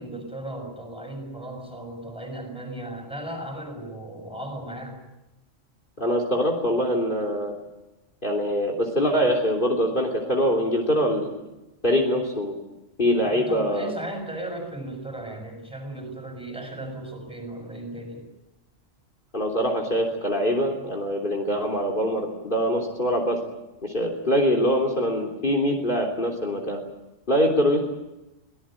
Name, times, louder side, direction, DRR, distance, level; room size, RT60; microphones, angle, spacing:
voice 1, 0.0-5.0 13.2-18.2, right 1 dB, 5° right, 4 dB, 6.7 m, -36 dB
voice 2, 6.0-7.5 8.2-11.3 11.8-12.5 13.0-13.9 19.3-23.4 23.8-26.8 27.3-27.8, equal, 40° left, 3 dB, 3.6 m, -23 dB
25.5 x 18.0 x 9.1 m, 0.98 s
omnidirectional pair, 1.3 m